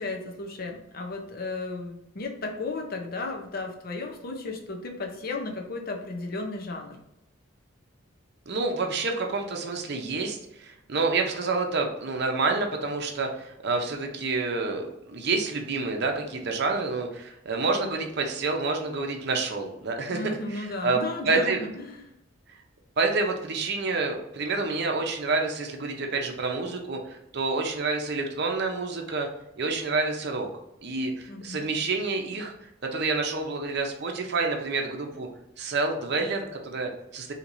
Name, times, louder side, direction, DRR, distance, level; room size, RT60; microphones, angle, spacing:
voice 1, 0.0-7.0 20.1-22.1 31.3-31.7, left 3 dB, 45° left, 3 dB, 0.6 m, -34 dB
voice 2, 8.5-20.2 20.5-21.7 23.0-29.3 29.6-30.5 30.8-32.5 32.9-35.3 35.6-37.3, right 3 dB, 55° right, 3 dB, 0.6 m, -28 dB
4.5 x 2.9 x 2.6 m, 0.86 s
head